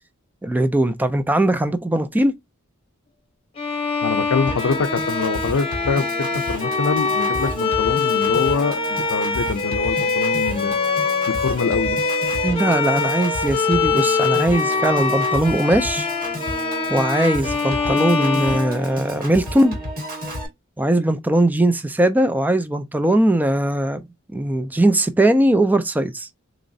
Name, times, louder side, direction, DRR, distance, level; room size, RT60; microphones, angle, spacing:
voice 1, 0.4-2.3 12.4-16.1 16.9-19.8 20.8-24.0 24.3-26.3, right 1 dB, 10° right, 0.3 m, -19 dB
Bowed string instrument, 3.6-19.4, left 4 dB, 30° left, 0.8 m, -23 dB
voice 2, 4.0-10.8 11.3-12.0, left 5 dB, 85° left, 0.5 m, -24 dB
Piano / Organ, 4.5-20.5, right 1 dB, 45° right, 2.0 m, -32 dB
4.0 x 3.0 x 2.6 m
head